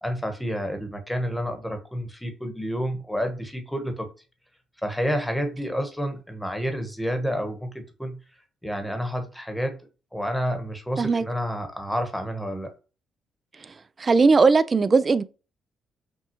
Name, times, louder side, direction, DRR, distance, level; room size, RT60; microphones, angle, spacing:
voice 1, 0.0-4.1 4.8-8.2 8.6-9.8 10.1-12.7, equal, 5° left, 1.1 m, -29 dB
voice 2, 14.0-15.2, right 4 dB, 35° right, 0.3 m, -18 dB
6.0 x 2.3 x 3.0 m
cardioid pair, 90°, 0 cm